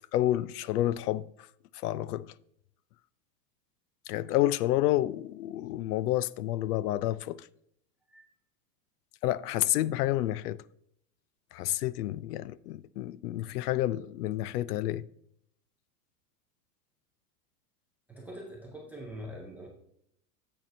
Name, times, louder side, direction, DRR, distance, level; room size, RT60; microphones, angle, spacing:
voice 1, 0.1-1.2 1.8-2.3 4.1-7.4 9.2-10.6 11.5-15.0, left 14 dB, 85° left, 0.6 m, -29 dB
voice 2, 18.1-19.7, equal, 5° right, 0.3 m, -43 dB
10.5 x 7.8 x 2.6 m
supercardioid pair, 145°, 45 cm